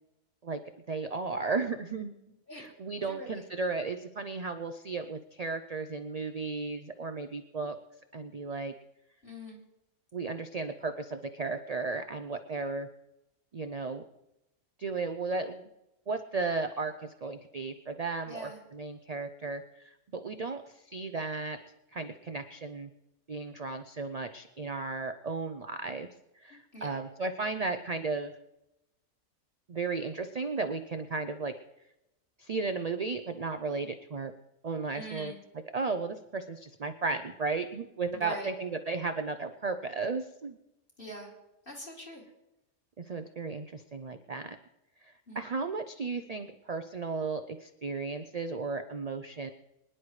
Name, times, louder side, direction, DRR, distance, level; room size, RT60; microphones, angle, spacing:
voice 1, 0.9-2.1 2.5-7.7 8.1-8.7 10.1-12.9 13.5-14.0 14.8-15.7 16.1-21.6 21.9-22.9 23.3-26.1 26.4-28.3 29.7-31.5 32.4-34.3 34.6-35.3 35.7-40.6 43.0-44.6 45.0-49.5, right 4 dB, 60° right, 7 dB, 0.4 m, -35 dB
voice 2, 3.0-3.4 9.2-9.6 18.3-18.6 26.7-27.0 34.9-35.4 38.1-38.5 41.0-41.3 41.7-42.2 45.3-45.4, right 1 dB, 40° left, -3 dB, 2.9 m, -43 dB
25.0 x 10.0 x 3.2 m, 0.92 s
omnidirectional pair, 1.5 m